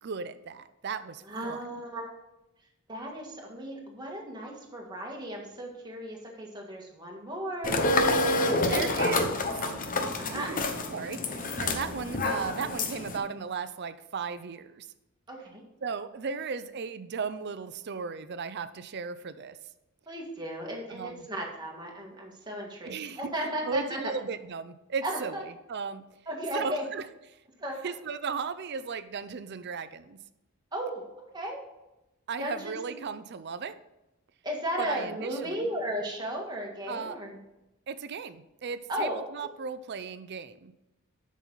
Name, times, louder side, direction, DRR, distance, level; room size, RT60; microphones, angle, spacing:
voice 1, 0.0-1.8 8.7-9.5 10.3-10.6 10.9-14.9 15.8-19.6 20.9-21.3 22.8-23.3 23.7-26.0 26.5-27.1 27.8-30.2 32.3-33.8 34.8-35.7 36.9-37.2 37.9-40.7, right 5 dB, 50° right, 13 dB, 0.5 m, -36 dB
voice 2, 1.3-2.1 2.9-8.4 8.8-8.9 10.2-10.5 15.3-15.6 20.1-24.0 25.0-25.4 26.3-26.8 27.6-27.7 30.7-31.1 31.3-31.7 32.4-33.0 34.4-37.4 38.9-39.2, right 1 dB, 20° right, -1 dB, 1.7 m, -35 dB
sound 1, 7.6-13.2, left 2 dB, 40° left, 0.8 m, -28 dB
8.2 x 6.2 x 4.0 m, 0.94 s
head